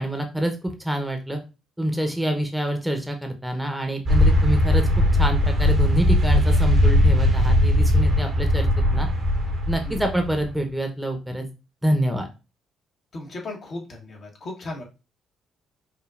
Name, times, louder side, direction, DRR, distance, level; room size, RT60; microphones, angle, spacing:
voice 1, 0.0-1.4 1.8-9.1 9.7-11.5 11.8-12.3, right 1 dB, 5° right, 4 dB, 0.8 m, -26 dB
sound 1, 4.1-10.5, left 1 dB, 55° right, 1.0 m, -19 dB
voice 2, 13.1-14.8, left 2 dB, 50° left, 1 dB, 1.1 m, -36 dB
5.1 x 2.2 x 2.5 m, 0.30 s
hypercardioid pair, 50°, 0 cm